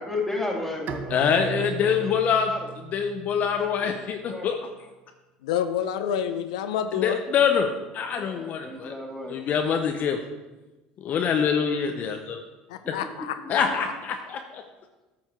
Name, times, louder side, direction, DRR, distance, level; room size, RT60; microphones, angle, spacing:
voice 1, 0.0-2.6 3.5-4.0 4.3-4.5 8.1-9.4 13.4-13.7, left 2 dB, 5° left, -2 dB, 2.4 m, -34 dB
Bowed string instrument, 0.9-4.1, right 8 dB, 50° right, 0.8 m, -38 dB
voice 2, 1.1-2.5 2.9-4.6 6.9-8.9 9.3-10.2 11.0-12.4 12.9-13.0 13.5-14.6, left 7 dB, 50° left, 5 dB, 0.7 m, -25 dB
voice 3, 5.4-7.2 12.7-13.6, left 9 dB, 85° left, 9 dB, 0.4 m, -28 dB
9.1 x 5.8 x 4.3 m, 1.1 s
supercardioid pair, 90°, 3 cm